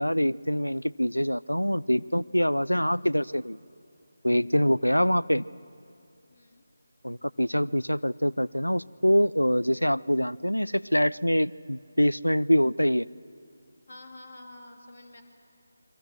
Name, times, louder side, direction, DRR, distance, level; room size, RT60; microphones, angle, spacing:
voice 1, 0.0-3.6 4.2-5.4 7.0-13.1, equal, 90° left, 20 dB, 0.5 m, -25 dB
voice 2, 6.3-6.6 13.9-15.2, left 2 dB, 50° left, 4 dB, 2.8 m, -48 dB
29.0 x 22.5 x 6.5 m, 2.7 s
figure-of-eight pair, 155°, 0 cm